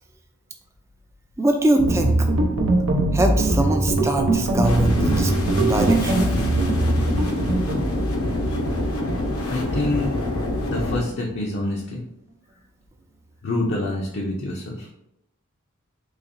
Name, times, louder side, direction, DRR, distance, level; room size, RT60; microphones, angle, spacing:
voice 1, 1.4-2.3 3.1-5.3 5.6-6.3, right 1 dB, 15° right, 4 dB, 0.3 m, -22 dB
sound 1, 1.8-11.3, right 2 dB, 75° right, 0.6 m, -22 dB
sound 2, 4.6-11.0, left 1 dB, 90° left, 0.8 m, -26 dB
voice 2, 9.5-10.1 10.7-12.0 13.4-14.9, left 2 dB, 55° left, -2 dB, 0.5 m, -26 dB
4.1 x 3.0 x 2.5 m, 0.80 s
head